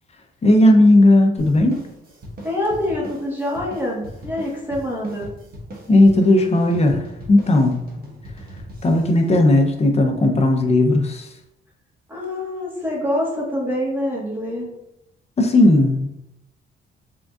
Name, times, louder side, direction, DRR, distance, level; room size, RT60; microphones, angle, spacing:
voice 1, 0.4-1.8 5.9-7.8 8.8-11.3 15.4-16.1, left 1 dB, 30° left, 4 dB, 0.7 m, -15 dB
sound 1, 1.4-10.2, equal, 50° right, 1.2 m, -39 dB
voice 2, 2.4-5.3 12.1-14.7, left 1 dB, 10° right, -4 dB, 1.4 m, -25 dB
3.7 x 3.6 x 2.4 m, 0.87 s
cardioid pair, 90°, 20 cm